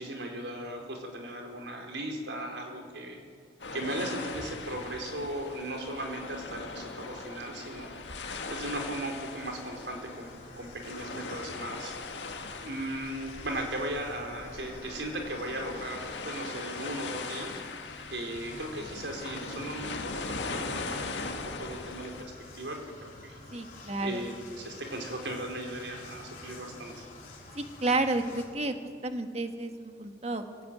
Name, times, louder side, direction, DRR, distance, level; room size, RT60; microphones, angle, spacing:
voice 1, 0.0-3.2 3.7-8.0 8.5-10.3 10.5-12.0 12.5-17.6 18.1-23.4 24.0-27.1, right 1 dB, 85° right, 2 dB, 4.4 m, -37 dB
sound 1, 3.6-22.2, left 3 dB, 90° left, 2.0 m, -40 dB
sound 2, 8.7-28.4, left 3 dB, 45° left, 4.5 m, -50 dB
voice 2, 23.5-24.2 27.5-28.7 29.0-30.7, right 2 dB, 35° right, 6 dB, 1.5 m, -31 dB
22.0 x 17.0 x 9.2 m, 2.2 s
head